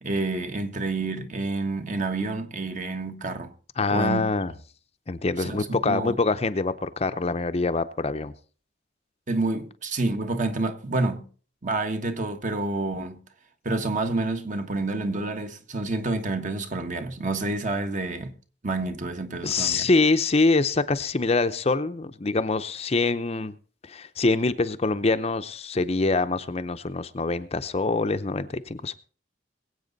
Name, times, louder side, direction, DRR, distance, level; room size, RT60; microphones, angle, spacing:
voice 1, 0.0-3.5 3.9-4.2 5.4-6.1 9.3-11.3 11.6-13.2 13.6-18.3 18.6-19.9, right 2 dB, 40° right, 1.3 m, -28 dB
voice 2, 3.8-4.5 5.1-8.3 19.4-23.5 23.8-28.9, left 3 dB, 35° left, 0.6 m, -25 dB
22.0 x 8.2 x 4.0 m
head